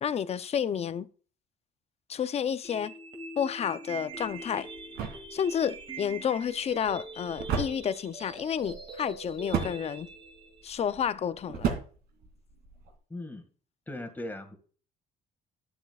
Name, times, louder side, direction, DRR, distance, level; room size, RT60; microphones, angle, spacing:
voice 1, 0.0-1.1 2.1-2.9 3.4-4.7 5.3-10.1 10.6-11.7, left 8 dB, 40° left, 0.6 m, -30 dB
sound 1, 2.6-10.6, right 3 dB, 30° right, 2.4 m, -44 dB
sound 2, 4.1-13.0, right 6 dB, 80° right, 2.9 m, -37 dB
voice 2, 13.1-13.4 13.9-14.6, left 1 dB, 10° left, 1.9 m, -38 dB
11.5 x 7.9 x 2.4 m
cardioid pair, 110°, 17 cm